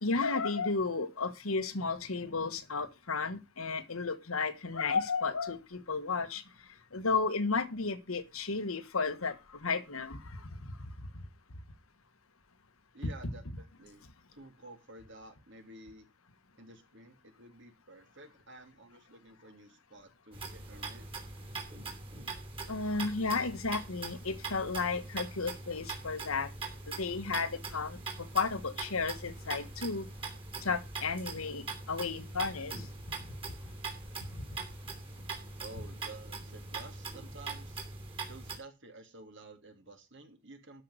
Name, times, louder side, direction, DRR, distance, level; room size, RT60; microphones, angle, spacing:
voice 1, 0.0-6.4 6.9-11.2 13.0-13.1 22.7-26.5 26.9-30.1 30.6-32.9 34.3-34.4, left 4 dB, 80° left, 1.5 m, -33 dB
voice 2, 12.9-14.1 14.3-16.1 16.6-21.1 35.6-37.8 38.3-40.8, right 2 dB, 60° right, 2.7 m, -52 dB
sound 1, 20.3-38.6, right 3 dB, 25° right, 3.0 m, -42 dB
12.5 x 5.8 x 6.4 m
head